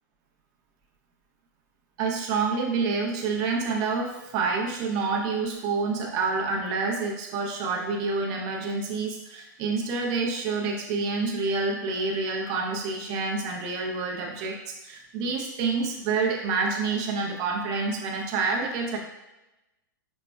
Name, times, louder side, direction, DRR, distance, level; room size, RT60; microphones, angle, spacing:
voice 1, 2.0-19.0, right 4 dB, 35° right, 0 dB, 0.6 m, -28 dB
5.1 x 2.1 x 2.2 m, 0.98 s
hypercardioid pair, 140°, 11 cm